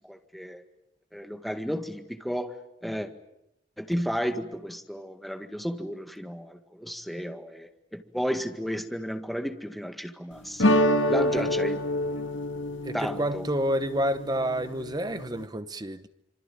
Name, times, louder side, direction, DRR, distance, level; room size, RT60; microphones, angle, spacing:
voice 1, 0.1-0.6 1.1-2.5 2.8-3.1 3.8-10.8 11.1-11.8 12.9-13.4, equal, ahead, 1.8 m, -33 dB
sound 1, 10.6-15.5, left 1 dB, 75° left, 1.8 m, -27 dB
voice 2, 12.8-16.1, equal, 20° right, 1.0 m, -29 dB
26.5 x 25.0 x 8.9 m
head